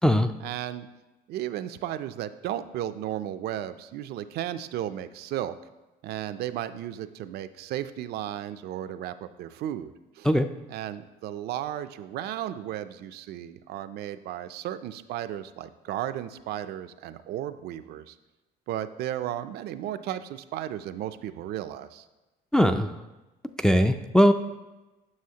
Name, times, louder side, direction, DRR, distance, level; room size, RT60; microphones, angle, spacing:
voice 1, 0.4-0.9 1.3-5.5 6.0-10.3 10.7-18.2 18.7-22.1, right 12 dB, 70° right, 11 dB, 0.4 m, -34 dB
voice 2, 22.5-22.9 23.6-24.3, equal, 5° left, 7 dB, 0.3 m, -20 dB
9.6 x 6.3 x 2.8 m, 1.1 s
cardioid pair, 110°, 17 cm